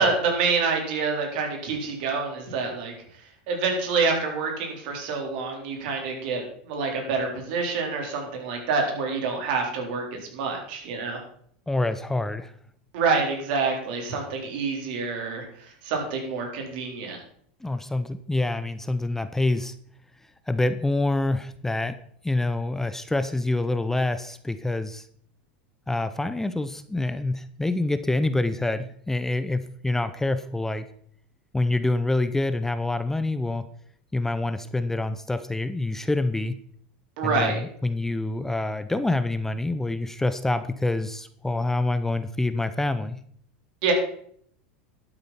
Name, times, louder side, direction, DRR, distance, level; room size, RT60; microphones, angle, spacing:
voice 1, 0.0-2.9 3.5-11.2 12.9-17.2 37.2-37.6 43.8-43.9, right 4 dB, 65° right, 2 dB, 3.8 m, -27 dB
voice 2, 11.7-12.5 17.6-19.7 20.5-25.1 25.9-30.9 31.5-33.7 34.1-36.6 37.2-43.2, left 2 dB, 5° left, 11 dB, 0.6 m, -26 dB
12.0 x 8.8 x 4.2 m, 0.63 s
hypercardioid pair, 110°, 5 cm